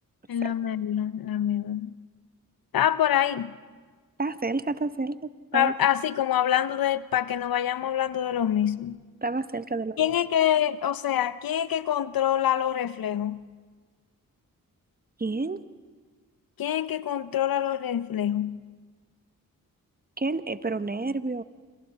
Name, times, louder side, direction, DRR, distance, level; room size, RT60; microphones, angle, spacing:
voice 1, 0.3-1.9 2.7-3.5 5.5-9.0 10.0-13.4 16.6-18.6, left 10 dB, 80° left, 15 dB, 0.7 m, -25 dB
voice 2, 4.2-5.7 9.2-10.1 15.2-15.6 20.2-21.4, right 3 dB, 25° right, 12 dB, 0.8 m, -30 dB
27.5 x 27.0 x 4.1 m, 1.5 s
cardioid pair, 50°, 35 cm